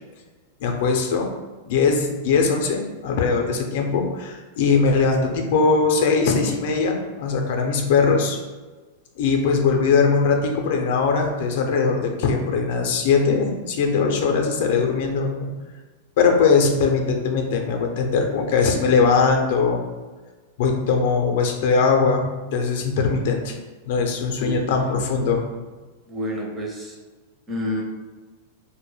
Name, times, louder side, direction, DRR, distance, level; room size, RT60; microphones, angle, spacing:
voice 1, 0.6-1.3 1.7-8.4 9.2-15.5 16.2-19.8 20.6-22.3 22.5-23.5 23.9-25.4, left 5 dB, 65° left, 2 dB, 0.4 m, -20 dB
voice 2, 24.4-25.1 26.1-27.0 27.5-27.8, equal, 15° right, -1 dB, 0.6 m, -29 dB
2.1 x 2.1 x 3.1 m, 1.3 s
hypercardioid pair, 125°, 0 cm